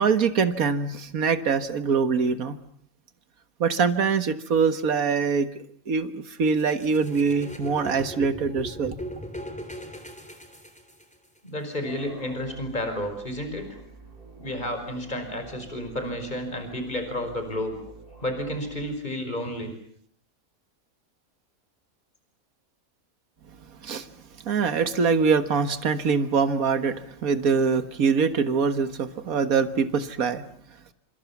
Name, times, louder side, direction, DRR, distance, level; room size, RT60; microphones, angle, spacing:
voice 1, 0.0-2.6 3.6-5.5 5.9-9.0 23.8-24.1 24.4-30.4, right 5 dB, 75° right, 11 dB, 2.0 m, -23 dB
sound 1, 6.4-11.4, equal, 5° left, 3.6 m, -39 dB
voice 2, 11.4-13.7 14.4-17.7 18.2-19.7, left 1 dB, 30° left, 7 dB, 5.5 m, -31 dB
sound 2, 11.8-18.8, right 3 dB, 40° right, 7.7 m, -47 dB
28.0 x 27.0 x 7.3 m, 0.64 s
omnidirectional pair, 1.5 m